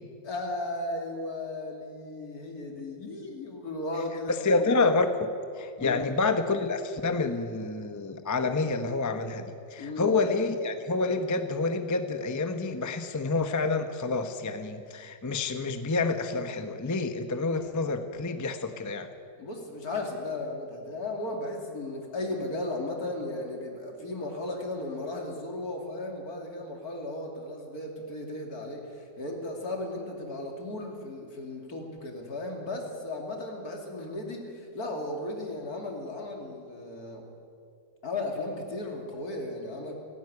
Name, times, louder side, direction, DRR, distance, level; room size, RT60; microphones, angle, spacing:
voice 1, 0.2-4.7 5.8-6.1 9.8-10.2 19.4-37.2 38.0-39.9, left 2 dB, 55° left, 2 dB, 3.1 m, -35 dB
voice 2, 4.3-19.1, left 3 dB, 15° left, 8 dB, 0.6 m, -28 dB
17.0 x 16.5 x 9.7 m, 2.4 s
omnidirectional pair, 2.0 m